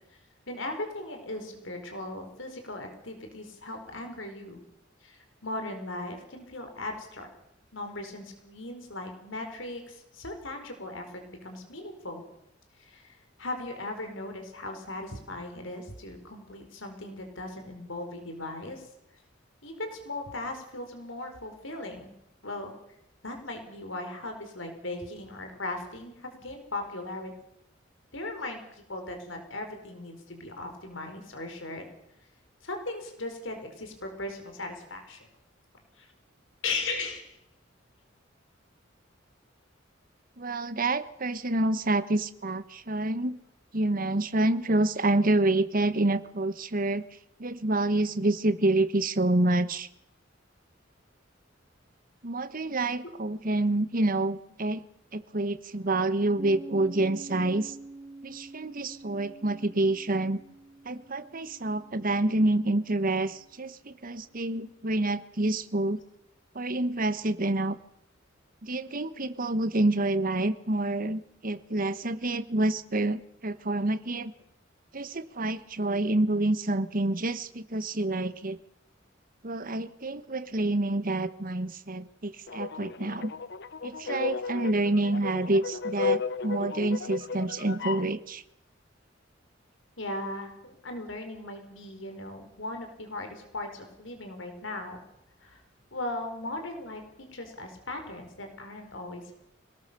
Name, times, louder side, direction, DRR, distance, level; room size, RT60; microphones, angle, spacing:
voice 1, 0.5-4.6 5.0-7.3 7.7-12.2 12.8-18.9 19.6-22.1 22.4-22.7 23.2-27.3 28.1-31.8 32.6-35.3 36.0-36.1 36.6-37.4 90.0-95.0 95.4-95.6 95.9-97.0 97.3-99.3, left 2 dB, 75° left, 5 dB, 4.8 m, -38 dB
voice 2, 40.4-43.4 43.7-47.0 47.4-49.9 52.2-54.8 55.1-57.7 58.2-60.4 60.8-66.0 66.5-67.8 68.6-74.3 74.9-78.6 79.4-83.3 83.8-88.4, right 2 dB, 45° right, 13 dB, 1.3 m, -28 dB
Piano, 56.4-63.6, right 2 dB, 25° right, 2.1 m, -47 dB
sound 1, 82.5-88.1, left 5 dB, 60° left, 0.8 m, -34 dB
25.5 x 19.0 x 6.9 m, 0.77 s
head